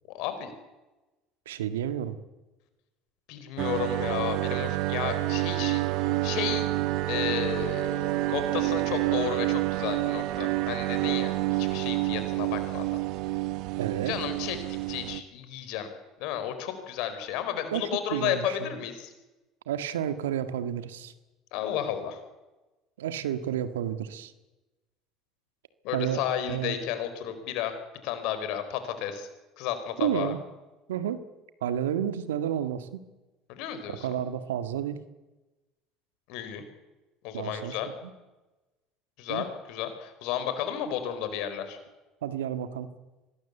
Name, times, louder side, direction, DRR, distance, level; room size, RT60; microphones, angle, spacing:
voice 1, 0.1-0.5 3.3-6.7 7.1-13.0 14.1-14.6 14.9-15.9 16.2-19.1 21.5-22.2 25.8-27.8 28.0-29.3 29.6-30.3 33.5-34.1 36.3-36.6 37.2-37.9 39.2-41.8, left 10 dB, 65° left, 9 dB, 4.5 m, -33 dB
voice 2, 1.4-2.2 13.8-14.1 17.7-18.7 19.6-21.1 23.0-24.3 25.9-26.8 30.0-30.4 30.9-31.2 31.6-33.0 34.0-35.0 37.3-38.1 39.3-39.4 42.2-42.9, right 10 dB, 80° right, 11 dB, 1.7 m, -31 dB
sound 1, 3.6-15.2, right 18 dB, 65° right, 1.3 m, -28 dB
25.0 x 19.5 x 8.3 m, 1.1 s
hypercardioid pair, 70°, 0 cm